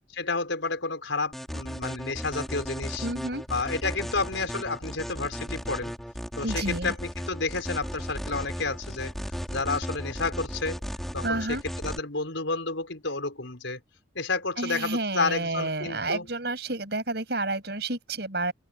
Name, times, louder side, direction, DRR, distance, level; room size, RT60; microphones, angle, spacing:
voice 1, 0.1-3.1 3.5-5.9 6.4-9.1 9.5-10.8 11.1-13.8 14.1-16.3, left 3 dB, 85° left, 5.1 m, -30 dB
sound 1, 1.3-12.0, equal, ahead, 4.0 m, -35 dB
voice 2, 3.0-3.5 6.4-6.9 11.2-11.6 14.6-18.5, right 2 dB, 60° right, 6.9 m, -30 dB
open air
head